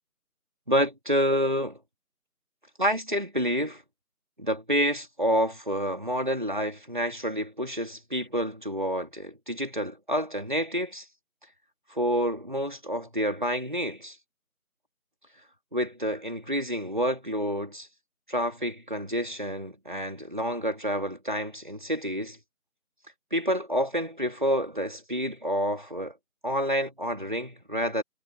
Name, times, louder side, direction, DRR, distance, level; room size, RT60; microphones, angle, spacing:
voice 1, 0.7-1.8 2.8-3.8 4.4-11.1 11.9-14.2 15.7-17.9 18.3-22.4 23.3-26.1 26.4-28.0, equal, 30° right, 3.0 m, -28 dB
figure-of-eight pair, 180°, 45 cm